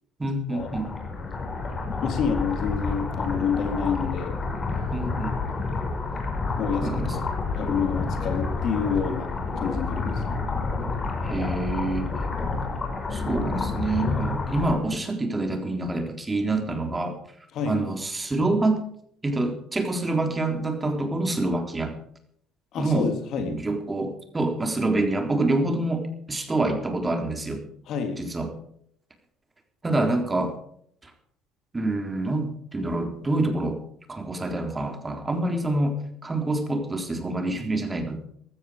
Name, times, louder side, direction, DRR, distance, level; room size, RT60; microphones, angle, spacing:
voice 1, 0.2-0.9 4.9-5.4 6.8-7.2 11.2-12.1 13.1-17.2 17.7-18.8 19.2-21.9 22.8-23.1 23.4-27.6 28.2-28.5 29.8-30.6 31.0-31.1 31.7-33.8 34.1-38.2, right 2 dB, 20° right, 5 dB, 3.7 m, -26 dB
sound 1, 0.6-14.8, left 3 dB, 30° left, 5.4 m, -29 dB
voice 2, 2.0-4.3 6.6-6.9 7.5-9.3 9.6-10.5 17.5-17.8 22.7-23.5 27.9-28.2, left 6 dB, 60° left, 5 dB, 3.2 m, -28 dB
16.0 x 13.0 x 5.0 m, 0.66 s
hypercardioid pair, 65°, 0 cm